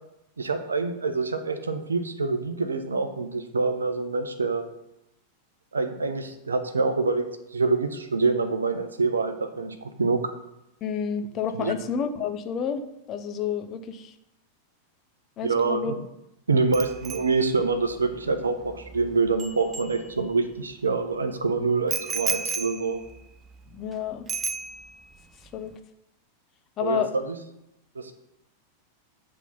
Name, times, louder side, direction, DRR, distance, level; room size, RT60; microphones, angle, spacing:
voice 1, 0.4-4.7 5.7-10.2 11.6-11.8 15.4-16.0 16.5-23.0 26.8-27.4 28.0-28.1, right 4 dB, 75° right, 8 dB, 0.7 m, -26 dB
voice 2, 10.8-12.8 13.1-14.1 15.4-15.9 23.7-24.2 25.5-25.7 26.8-27.1, left 7 dB, 30° left, 7 dB, 0.7 m, -29 dB
Bicycle bell, 16.7-20.6 21.9-23.9 24.3-25.2 25.4-25.7, right 6 dB, 20° right, 0.6 m, -34 dB
8.2 x 3.7 x 5.8 m, 0.86 s
figure-of-eight pair, 90°, 0 cm